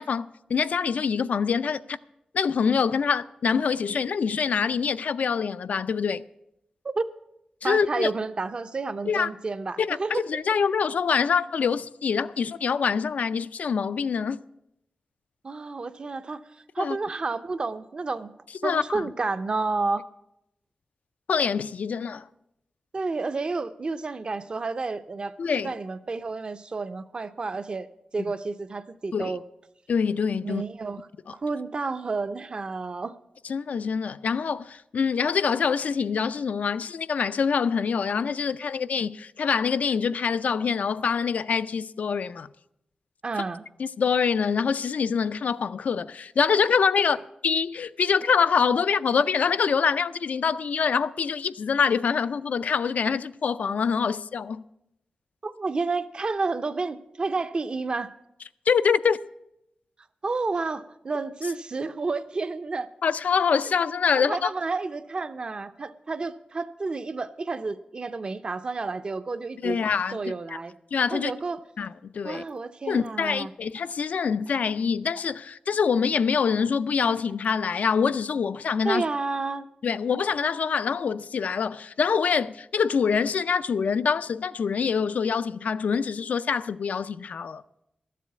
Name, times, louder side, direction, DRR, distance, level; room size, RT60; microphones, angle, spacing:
voice 1, 0.0-2.0 2.3-6.2 7.6-8.1 9.1-9.3 9.8-14.4 16.8-17.0 18.6-19.1 21.3-22.3 25.4-25.7 28.2-28.3 29.1-29.4 29.9-30.6 31.3-31.4 33.5-42.5 43.8-47.2 47.4-54.6 58.7-59.2 63.0-64.5 69.6-70.2 70.5-70.6 70.9-71.3 71.8-72.4 72.9-79.0 79.8-87.6, left 6 dB, 75° left, 0.4 m, -25 dB
voice 2, 7.6-10.2 15.4-16.4 16.7-18.3 18.6-20.1 22.9-27.9 28.1-29.4 30.4-33.2 43.2-43.6 55.4-58.2 60.2-62.9 64.2-69.8 70.1-70.7 71.1-71.6 72.2-73.5 78.8-79.7, right 3 dB, 40° right, 0.6 m, -30 dB
sound 1, 71.8-71.9 72.3-72.6 73.0-73.2 73.7-74.0 74.4-74.7 75.2-75.4 75.8-76.0 76.6-76.8 77.3-77.5 78.0-78.2 78.7-78.9, right 6 dB, 85° right, 2.4 m, -53 dB
13.0 x 7.6 x 8.1 m
wide cardioid pair, 175°, 3 cm